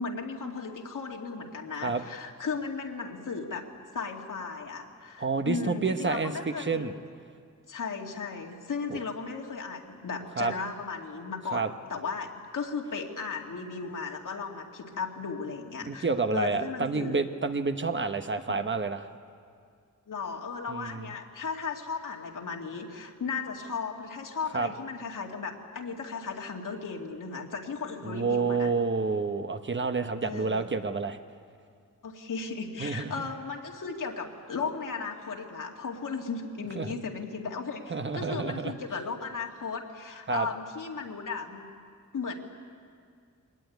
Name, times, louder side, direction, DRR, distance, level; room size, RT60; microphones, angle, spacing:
voice 1, 0.0-6.8 7.7-16.1 16.3-17.2 18.5-18.6 20.1-28.7 30.2-30.7 32.0-41.7 42.1-42.4, left 5 dB, 80° left, 1 dB, 2.4 m, -36 dB
voice 2, 5.2-6.3 6.7-6.9 8.9-9.0 10.4-10.5 11.5-11.7 15.8-19.1 20.7-21.1 24.5-24.7 28.0-31.2 32.8-33.2 36.7-36.9 37.9-38.7 40.3-40.5, right 4 dB, 40° right, 8 dB, 1.0 m, -29 dB
23.0 x 20.0 x 9.3 m, 2.2 s
wide cardioid pair, 125°, 31 cm